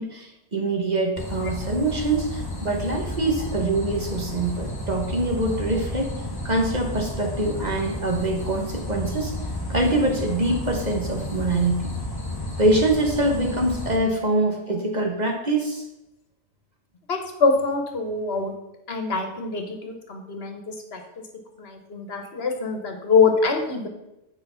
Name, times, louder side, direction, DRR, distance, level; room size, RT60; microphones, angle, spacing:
voice 1, 0.0-6.1 6.4-9.3 9.7-11.9 12.6-15.8, right 2 dB, 40° right, 2 dB, 1.3 m, -24 dB
sound 1, 1.2-14.0, left 1 dB, 20° left, 1.0 m, -32 dB
voice 2, 17.1-18.5 18.9-21.0 21.6-23.9, left 4 dB, 60° left, 4 dB, 1.3 m, -24 dB
8.5 x 4.7 x 5.7 m, 0.90 s
omnidirectional pair, 1.2 m